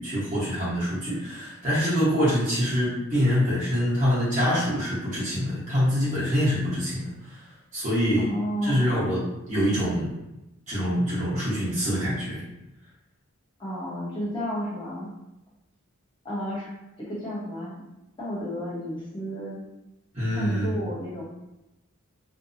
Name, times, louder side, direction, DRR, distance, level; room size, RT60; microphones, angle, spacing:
voice 1, 0.0-7.4 7.7-8.3 8.6-10.1 10.7-12.4 20.1-20.7, equal, 35° right, -11 dB, 1.1 m, -25 dB
voice 2, 8.2-9.0 13.6-15.1 16.2-16.7 17.1-17.7 18.2-19.6 20.3-21.2, equal, 25° left, -7 dB, 0.8 m, -32 dB
2.6 x 2.1 x 2.6 m, 0.94 s
head